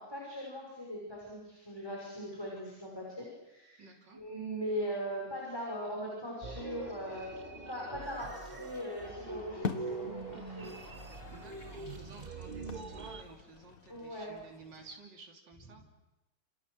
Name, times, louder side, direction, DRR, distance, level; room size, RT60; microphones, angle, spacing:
voice 1, 0.0-3.8 4.1-7.3 7.7-10.9 13.9-14.3, equal, 10° left, -3 dB, 6.0 m, -40 dB
voice 2, 3.8-4.2 11.3-15.9, right 3 dB, 60° right, 0 dB, 3.7 m, -53 dB
sound 1, 6.4-13.1, left 1 dB, 25° left, 5.6 m, -53 dB
sound 2, 6.4-13.2, right 4 dB, 30° right, 0.9 m, -44 dB
sound 3, 9.0-15.0, left 6 dB, 45° left, 1.5 m, -45 dB
28.0 x 28.0 x 6.5 m, 0.97 s
omnidirectional pair, 2.2 m